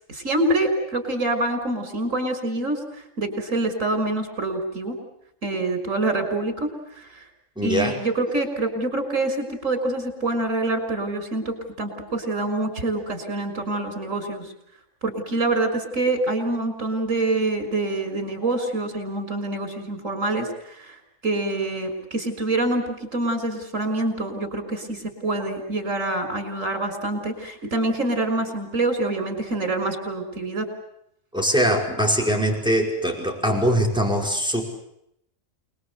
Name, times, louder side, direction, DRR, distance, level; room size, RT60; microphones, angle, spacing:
voice 1, 0.1-2.8 3.2-5.0 5.4-7.2 7.6-14.5 15.0-21.0 21.2-30.7, right 2 dB, 75° right, 6 dB, 6.3 m, -26 dB
voice 2, 7.6-8.0 31.3-34.6, equal, 5° right, 1 dB, 5.3 m, -22 dB
29.0 x 21.5 x 8.3 m, 0.76 s
omnidirectional pair, 1.3 m